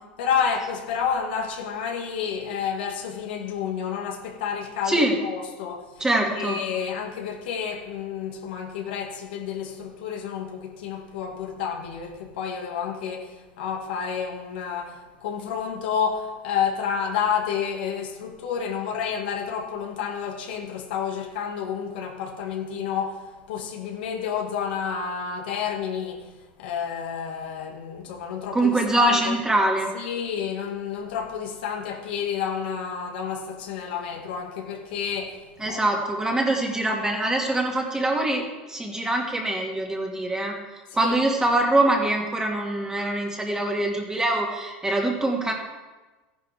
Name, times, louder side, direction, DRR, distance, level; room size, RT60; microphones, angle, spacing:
voice 1, 0.2-5.9 6.3-26.3 26.6-29.4 29.9-36.0 40.9-41.2, left 7 dB, 80° left, 1 dB, 2.1 m, -30 dB
voice 2, 6.0-6.6 28.5-29.9 35.6-40.5 40.9-45.5, right 1 dB, 10° right, 0 dB, 2.3 m, -24 dB
14.5 x 10.5 x 3.6 m, 1.2 s
supercardioid pair, 105°, 5 cm